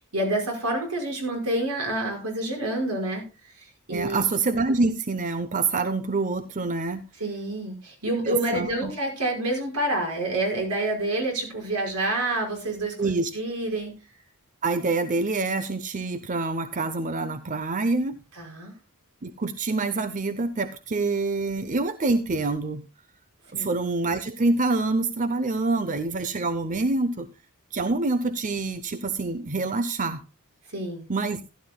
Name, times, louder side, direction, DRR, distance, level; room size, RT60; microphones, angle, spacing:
voice 1, 0.1-3.3 3.6-4.2 7.2-14.0 18.4-18.7 23.5-23.7 30.7-31.0, right 1 dB, 90° right, 1 dB, 5.5 m, -28 dB
voice 2, 3.9-7.0 8.3-8.9 13.0-13.3 14.6-18.2 19.2-22.8 23.5-27.3 27.7-30.2 31.1-31.4, right 3 dB, 35° right, 11 dB, 0.7 m, -26 dB
15.5 x 11.5 x 2.3 m, 0.30 s
head